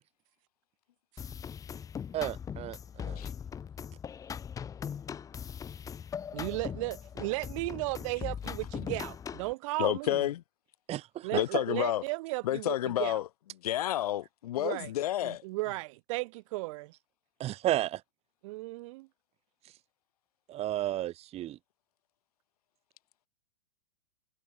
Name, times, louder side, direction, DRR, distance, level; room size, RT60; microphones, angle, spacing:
sound 1, 1.2-9.5, left 7 dB, 15° left, 0.8 m, -40 dB
voice 1, 2.1-3.2 10.9-11.4 17.4-18.0 20.5-21.6, right 14 dB, 30° right, 2.0 m, -33 dB
voice 2, 6.3-10.2 11.2-13.2 14.6-14.9 15.2-16.9 18.4-19.1, right 23 dB, 50° right, 2.3 m, -35 dB
voice 3, 9.8-10.4 11.3-12.0 12.4-13.3 13.6-15.4, left 13 dB, 65° left, 1.2 m, -30 dB
hypercardioid pair, 115°, 21 cm